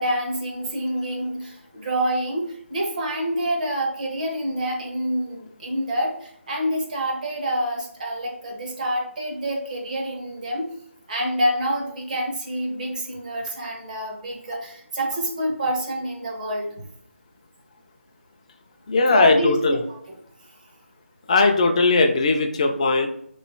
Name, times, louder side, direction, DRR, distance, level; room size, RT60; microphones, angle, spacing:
voice 1, 0.0-10.7 11.1-16.9 19.1-19.6, right 1 dB, 35° right, 0 dB, 0.8 m, -27 dB
voice 2, 18.9-19.8 21.3-23.1, left 3 dB, 30° left, 5 dB, 0.4 m, -18 dB
3.1 x 3.0 x 4.4 m, 0.69 s
figure-of-eight pair, 165°, 7 cm